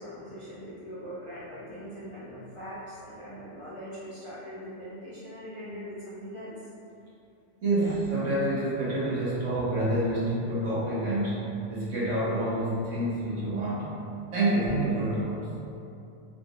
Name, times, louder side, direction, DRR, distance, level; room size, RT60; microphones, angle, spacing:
voice 1, 0.0-6.5 7.7-7.9, equal, 55° left, -11 dB, 0.3 m, -41 dB
voice 2, 7.6-14.0 14.3-15.5, right 1 dB, 85° right, -9 dB, 1.4 m, -28 dB
3.7 x 2.9 x 2.4 m, 2.6 s
omnidirectional pair, 1.2 m